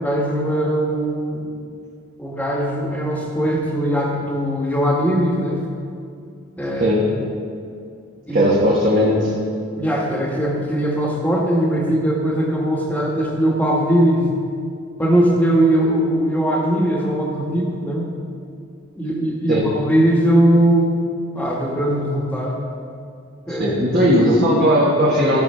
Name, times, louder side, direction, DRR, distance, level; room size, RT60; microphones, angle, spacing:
voice 1, 0.0-1.5 2.2-5.6 6.6-6.9 8.3-8.5 9.8-14.3 15.0-18.1 18.9-21.0 21.3-22.6 23.5-23.7, right 1 dB, 10° left, -2 dB, 1.5 m, -20 dB
voice 2, 6.7-7.1 8.3-9.3 19.5-19.7 23.5-25.4, equal, 45° right, -7 dB, 1.6 m, -17 dB
16.0 x 5.6 x 5.6 m, 2.4 s
head